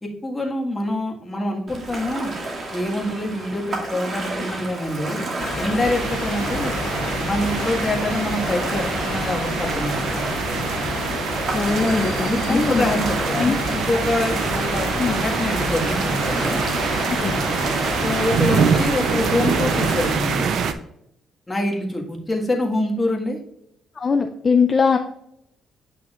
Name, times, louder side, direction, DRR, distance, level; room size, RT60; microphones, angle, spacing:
voice 1, 0.0-2.3 2.7-5.2 5.6-6.8 7.2-10.3 12.3-16.6 18.0-20.5 21.5-23.4, left 1 dB, 20° left, 0 dB, 1.7 m, -25 dB
Ocean, 1.7-20.7, right 2 dB, 50° right, 1.9 m, -32 dB
sound 1, 5.4-20.2, left 3 dB, 80° left, 1.8 m, -29 dB
sound 2, 5.8-20.7, right 7 dB, 70° right, 0.6 m, -25 dB
voice 2, 11.5-12.9 13.3-13.8 15.0-15.1 17.2-17.4 24.0-25.0, left 5 dB, 35° left, 5 dB, 0.5 m, -21 dB
8.5 x 5.9 x 2.5 m, 0.75 s
cardioid pair, 90°, 0 cm